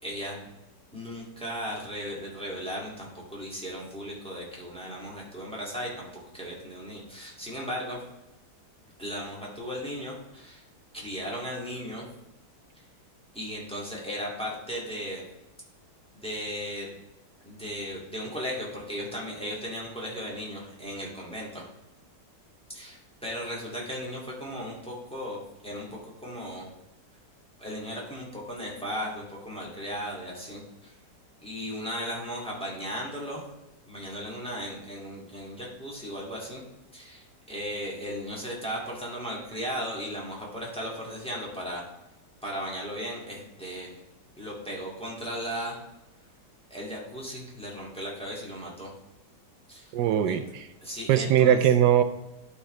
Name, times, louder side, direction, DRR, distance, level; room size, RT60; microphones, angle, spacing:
voice 1, 0.0-0.4 0.9-5.9 6.3-8.0 9.0-10.6 10.9-12.1 13.3-15.2 16.1-17.0 17.4-21.6 22.7-26.7 27.6-30.9 31.4-33.4 33.9-36.6 36.9-41.9 42.4-43.9 44.4-45.8 46.7-48.9 49.7-49.9 50.3-50.4 50.8-51.6, equal, 5° left, -5 dB, 2.1 m, -36 dB
voice 2, 49.9-50.7 51.1-52.0, right 10 dB, 85° right, 9 dB, 1.2 m, -21 dB
11.5 x 4.9 x 3.2 m, 0.96 s
omnidirectional pair, 1.8 m